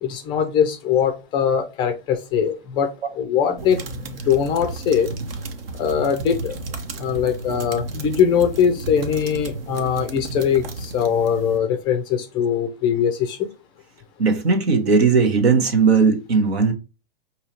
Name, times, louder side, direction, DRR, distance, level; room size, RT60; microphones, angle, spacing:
voice 1, 0.0-2.9 3.2-3.8 4.3-5.1 5.8-6.5 7.0-13.4, left 8 dB, 15° left, 0.3 m, -21 dB
sound 1, 3.6-11.6, right 3 dB, 70° right, 1.0 m, -33 dB
voice 2, 14.2-16.7, right 5 dB, 90° right, 1.2 m, -17 dB
4.9 x 2.8 x 2.8 m
hypercardioid pair, 130°, 30 cm